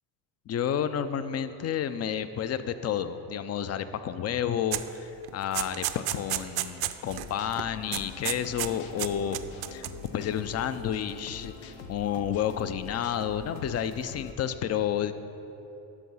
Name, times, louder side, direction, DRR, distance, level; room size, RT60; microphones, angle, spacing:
voice 1, 0.5-9.4 9.7-9.9 10.1-15.1, left 9 dB, 35° left, 12 dB, 0.5 m, -30 dB
sound 1, 4.7-4.9 5.2-7.3 7.5-7.7 7.9-8.7 9.0-10.1, right 15 dB, 60° right, 0.5 m, -32 dB
sound 2, 7.0-14.3, left 6 dB, 85° left, 0.8 m, -44 dB
12.5 x 4.7 x 5.5 m, 3.0 s
supercardioid pair, 95°, 44 cm